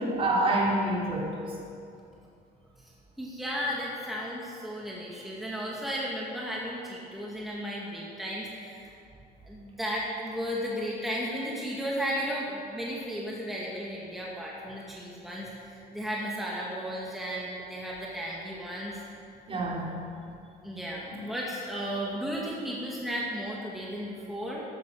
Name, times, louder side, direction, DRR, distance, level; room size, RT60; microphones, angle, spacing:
voice 1, 0.0-1.6 19.5-19.9 21.1-21.2, right 1 dB, 35° right, -3 dB, 3.6 m, -27 dB
voice 2, 3.2-8.8 9.4-19.0 20.6-24.6, equal, ahead, -5 dB, 2.4 m, -34 dB
14.0 x 12.5 x 5.8 m, 2.5 s
cardioid pair, 110°, 17 cm